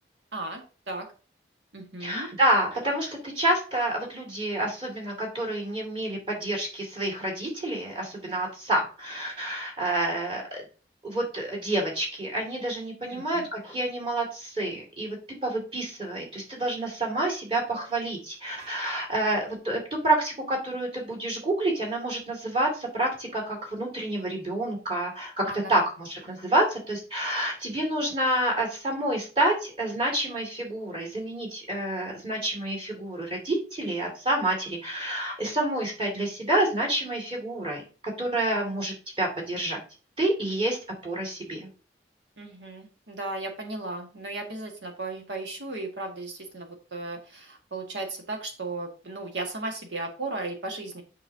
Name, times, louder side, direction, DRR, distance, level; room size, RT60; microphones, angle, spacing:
voice 1, 0.3-1.1 1.7-2.3 13.1-13.5 25.4-25.7 38.5-38.7 42.4-51.0, right 2 dB, 90° right, 2 dB, 1.7 m, -36 dB
voice 2, 2.0-10.6 11.0-15.2 15.4-39.8 40.2-40.8 41.0-41.7, right 1 dB, 30° right, 0 dB, 2.3 m, -28 dB
8.0 x 5.4 x 2.8 m, 0.37 s
head